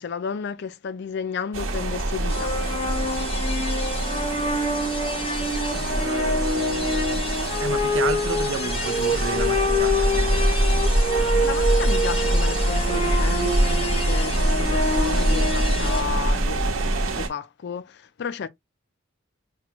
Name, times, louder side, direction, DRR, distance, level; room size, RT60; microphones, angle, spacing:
voice 1, 0.0-2.6 11.4-18.5, left 6 dB, 55° left, 0.4 m, -32 dB
sound 1, 1.5-17.3, right 1 dB, 80° right, 1.1 m, -24 dB
sound 2, 2.3-16.0, left 1 dB, 30° left, 0.7 m, -26 dB
voice 2, 5.7-10.4, right 4 dB, 65° right, 0.6 m, -32 dB
5.9 x 2.2 x 2.9 m
head